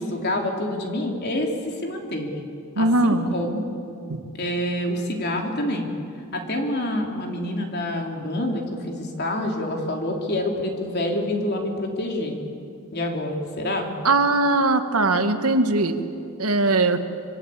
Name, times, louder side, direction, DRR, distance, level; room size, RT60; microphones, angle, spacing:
voice 1, 0.0-2.3 2.8-3.7 4.3-5.9 6.3-12.4 12.9-13.9, left 1 dB, 50° left, 2 dB, 3.6 m, -27 dB
voice 2, 2.8-3.3 4.1-4.2 14.0-15.9 16.4-17.0, right 2 dB, 85° right, 7 dB, 1.8 m, -20 dB
25.5 x 25.0 x 8.8 m, 2.5 s
head